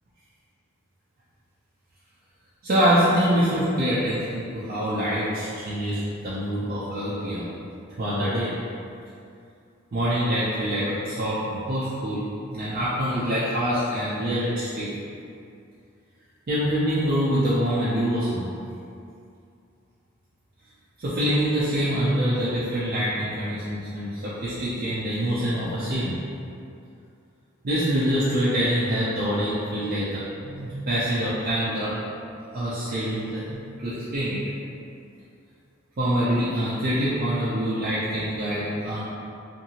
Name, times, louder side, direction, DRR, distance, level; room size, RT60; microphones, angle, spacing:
voice 1, 2.6-7.4 8.0-8.5 9.9-12.2 12.5-14.9 16.5-18.5 21.0-26.2 27.6-31.9 32.5-34.4 36.0-39.0, equal, 45° right, -10 dB, 0.5 m, -25 dB
2.8 x 2.5 x 2.7 m, 2.5 s
head